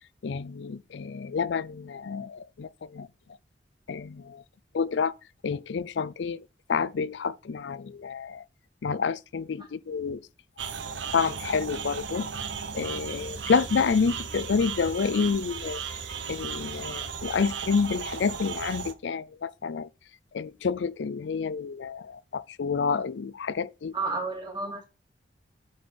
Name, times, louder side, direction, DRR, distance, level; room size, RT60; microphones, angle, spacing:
voice 1, 0.2-3.1 3.9-4.4 4.7-5.1 5.4-8.4 8.8-10.2 10.9-12.3 12.7-15.8 16.3-19.9 20.3-23.9, left 5 dB, 75° left, 0.4 m, -29 dB
sound 1, 10.6-18.9, right 6 dB, 85° right, 0.9 m, -36 dB
voice 2, 23.9-24.9, right 3 dB, 25° right, 2.3 m, -31 dB
9.4 x 4.3 x 6.2 m
head